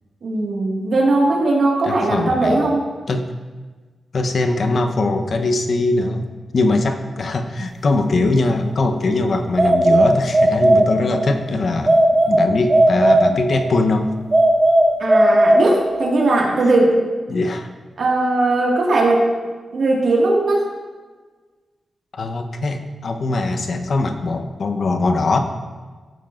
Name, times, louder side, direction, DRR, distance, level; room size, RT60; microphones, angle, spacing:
voice 1, 0.2-2.8 15.0-17.0 18.0-19.2 19.7-20.7, right 2 dB, 70° right, -2 dB, 1.9 m, -18 dB
voice 2, 1.8-2.6 3.1-3.3 4.1-6.3 6.5-12.0 12.3-14.1 17.3-17.7 22.1-25.4, left 2 dB, 60° left, 6 dB, 0.8 m, -21 dB
sound 1, 9.6-11.3 11.9-13.8 14.3-16.2, right 1 dB, 30° right, 1.3 m, -15 dB
15.0 x 6.9 x 2.5 m, 1.4 s
cardioid pair, 75°, 0 cm